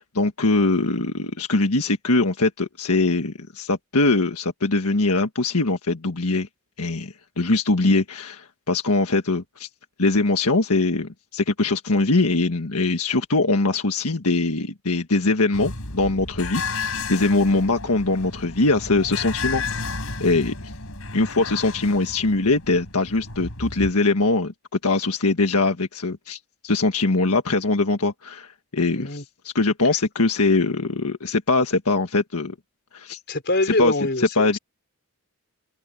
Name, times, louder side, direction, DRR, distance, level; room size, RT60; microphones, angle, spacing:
voice 1, 0.0-6.5 6.8-9.7 10.0-19.9 20.2-20.7 21.1-24.5 24.8-32.5 32.9-33.2 33.6-33.9 34.3-34.6, left 2 dB, 85° left, 1.6 m, -22 dB
sound 1, 15.5-23.9, left 4 dB, 65° left, 6.9 m, -32 dB
voice 2, 33.3-34.6, left 2 dB, 50° left, 4.3 m, -24 dB
head